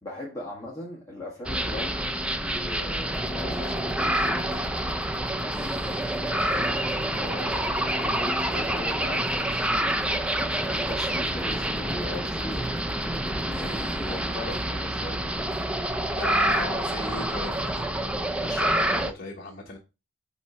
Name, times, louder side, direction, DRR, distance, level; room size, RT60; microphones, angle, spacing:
voice 1, 0.0-2.1 2.4-4.5 5.4-10.1 10.4-15.3 16.6-17.2, left 1 dB, 15° left, 1.6 m, -39 dB
sound 1, 1.5-19.1, right 1 dB, 5° right, 0.5 m, -27 dB
sound 2, 3.0-18.0, right 1 dB, 75° right, 1.3 m, -48 dB
voice 2, 16.2-17.9 18.3-19.8, left 2 dB, 50° left, 1.2 m, -37 dB
8.7 x 3.2 x 4.2 m
head